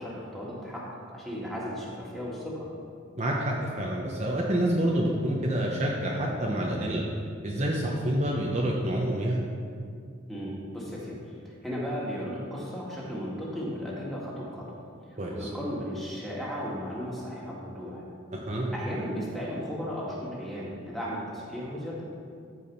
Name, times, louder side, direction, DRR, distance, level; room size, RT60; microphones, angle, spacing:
voice 1, 0.0-2.7 10.3-14.7 15.3-18.0 18.7-22.0, equal, ahead, -6 dB, 2.1 m, -35 dB
voice 2, 3.2-7.0 7.4-9.4 15.2-15.5 18.3-18.8, right 1 dB, 35° right, -2 dB, 0.9 m, -28 dB
14.0 x 4.9 x 5.6 m, 2.3 s
head